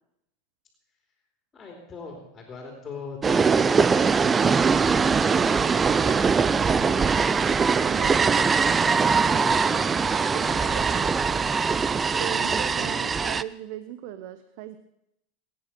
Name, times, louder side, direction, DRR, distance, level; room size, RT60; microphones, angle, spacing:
voice 1, 1.5-4.3 4.6-7.4 8.0-8.7 9.0-11.6 11.9-12.9, left 4 dB, 20° left, 2 dB, 3.5 m, -43 dB
sound 1, 3.2-13.4, right 5 dB, 20° right, 0.5 m, -22 dB
voice 2, 7.8-8.3 10.3-11.1 12.2-14.8, right 12 dB, 60° right, 12 dB, 0.9 m, -38 dB
21.5 x 9.4 x 5.9 m, 0.81 s
supercardioid pair, 125°, 0 cm